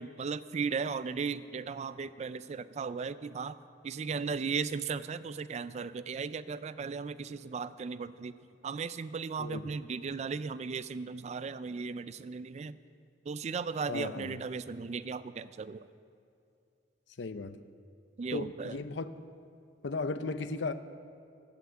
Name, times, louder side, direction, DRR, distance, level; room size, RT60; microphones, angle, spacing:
voice 1, 0.0-3.6 3.8-8.3 8.6-12.8 13.3-15.9 18.2-18.8, right 5 dB, 40° right, 0.3 m, -36 dB
voice 2, 13.9-14.3 17.2-17.6 18.3-19.0 19.8-20.7, left 3 dB, 90° left, 0.6 m, -35 dB
17.0 x 5.9 x 7.3 m
head